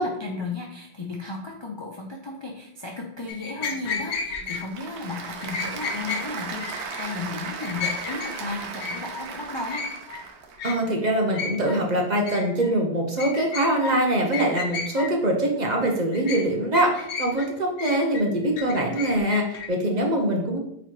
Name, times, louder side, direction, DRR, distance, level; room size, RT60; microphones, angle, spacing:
voice 1, 0.0-9.9, left 3 dB, 40° left, -1 dB, 0.4 m, -34 dB
sound 1, 3.3-4.6 5.4-6.2 6.6-7.1 7.4-8.3 8.6-9.3 9.7-10.2 10.6-10.8 11.0-11.8 12.1-12.7 13.2-14.0 14.3-15.1 15.7-16.4 16.7-17.5 17.8-19.7, left 5 dB, 80° left, 1.0 m, -32 dB
Applause / Crowd, 4.1-10.6, right 5 dB, 85° right, 0.9 m, -36 dB
voice 2, 10.6-20.6, right 1 dB, 45° right, 1 dB, 0.8 m, -23 dB
4.2 x 4.1 x 3.1 m, 0.75 s
omnidirectional pair, 1.1 m